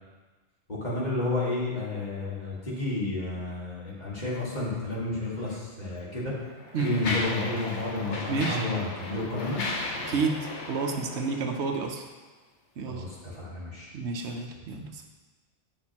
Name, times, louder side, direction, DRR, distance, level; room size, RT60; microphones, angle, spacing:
voice 1, 0.8-6.3 6.8-9.6 12.9-13.9, left 2 dB, 40° left, -7 dB, 2.0 m, -31 dB
Mechanisms, 5.4-5.5 6.3-12.0, left 2 dB, 80° left, 1.3 m, -36 dB
voice 2, 8.3-8.6 10.1-12.0 12.8-13.0 13.9-15.0, right 4 dB, 80° right, 3 dB, 1.0 m, -30 dB
8.8 x 6.2 x 2.9 m, 1.3 s
omnidirectional pair, 1.2 m